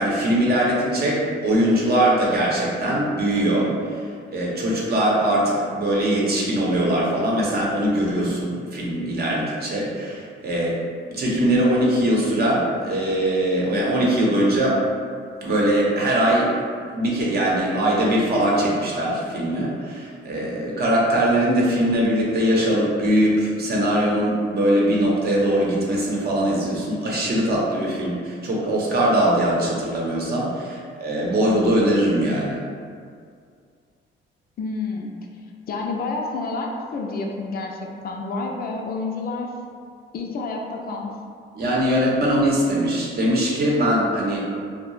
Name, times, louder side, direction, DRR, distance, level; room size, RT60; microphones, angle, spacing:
voice 1, 0.0-10.8 11.1-14.9 15.4-16.5 16.9-32.6 41.5-44.4, right 1 dB, 55° right, -4 dB, 0.7 m, -21 dB
voice 2, 34.6-35.1 35.7-39.5 40.1-41.1, left 3 dB, 50° left, 0 dB, 0.4 m, -29 dB
2.6 x 2.0 x 3.0 m, 2.2 s
cardioid pair, 90°, 20 cm